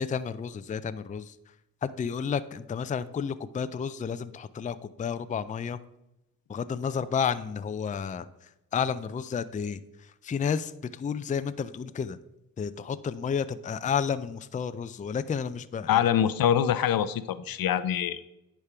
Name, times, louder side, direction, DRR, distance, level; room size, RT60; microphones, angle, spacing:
voice 1, 0.0-1.4 1.8-5.8 6.5-8.3 8.7-9.8 10.2-12.2 12.6-16.0, left 6 dB, 25° left, 14 dB, 0.4 m, -31 dB
voice 2, 15.9-18.3, left 10 dB, 75° left, 14 dB, 0.6 m, -24 dB
9.8 x 3.5 x 5.7 m, 0.90 s
cardioid pair, 75°, 35 cm